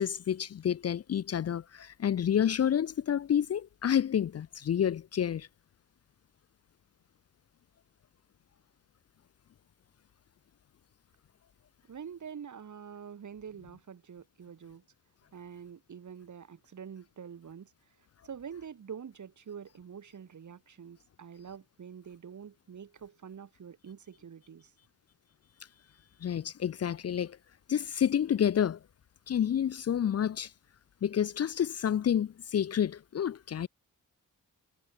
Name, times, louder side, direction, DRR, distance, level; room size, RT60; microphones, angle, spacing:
voice 1, 0.0-5.5 26.2-27.4 27.7-28.8 29.3-30.5 31.0-33.7, left 9 dB, 50° left, 0.5 m, -29 dB
voice 2, 11.9-14.8 15.3-17.7 18.2-24.7, right 7 dB, 60° right, 1.6 m, -46 dB
wide cardioid pair, 115°, 34 cm